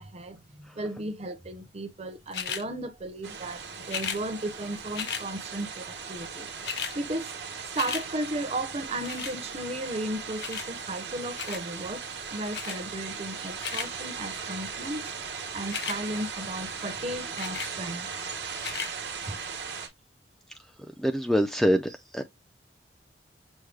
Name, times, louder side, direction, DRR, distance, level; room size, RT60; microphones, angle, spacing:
voice 1, 0.0-6.5 6.9-7.3 7.7-12.0 12.3-15.2 15.5-18.1 19.3-19.4, right 1 dB, 35° right, 0.8 m, -35 dB
sound 1, 2.3-2.6 3.8-4.2 4.9-5.3 6.2-6.3 6.5-7.0 7.3-8.1 9.1-9.4 10.4-10.7 11.4-11.7 12.5-12.8 13.4-13.9 15.6-16.0 17.4-17.7 18.5-18.9 19.6-19.7, left 7 dB, 65° left, 0.8 m, -34 dB
sound 2, 3.2-19.9, right 6 dB, 75° right, 1.1 m, -38 dB
voice 2, 21.0-22.2, equal, ahead, 0.4 m, -24 dB
6.3 x 2.1 x 3.4 m
head